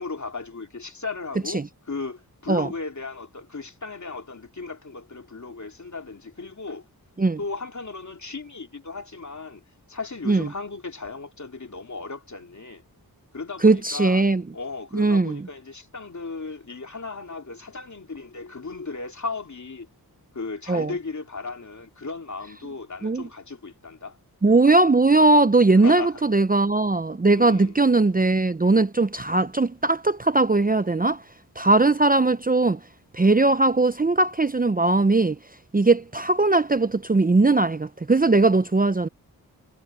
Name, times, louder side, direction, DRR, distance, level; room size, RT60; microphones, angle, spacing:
voice 1, 0.0-6.9 7.4-9.6 9.9-12.8 13.3-14.2 14.5-19.9 20.3-24.2 25.8-26.2 27.3-27.8, left 4 dB, 45° left, 2.7 m, -36 dB
voice 2, 13.6-14.4 14.9-15.4 20.7-20.9 23.0-23.2 24.4-31.2 31.6-32.8 33.1-35.4 35.7-39.1, right 3 dB, 20° right, 0.7 m, -19 dB
cardioid pair, 50°, 39 cm